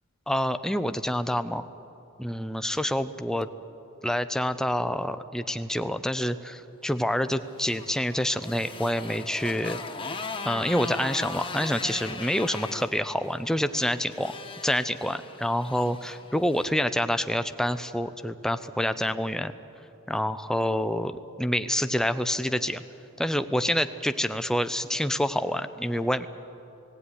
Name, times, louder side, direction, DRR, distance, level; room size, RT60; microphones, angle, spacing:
voice 1, 0.3-1.6 2.2-3.5 4.0-9.8 10.4-14.3 14.6-19.5 20.1-22.8 23.2-26.3, equal, 5° left, 10 dB, 0.5 m, -27 dB
Motorcycle, 7.3-16.8, left 3 dB, 25° left, 1.3 m, -39 dB
17.5 x 17.0 x 9.8 m, 2.8 s
head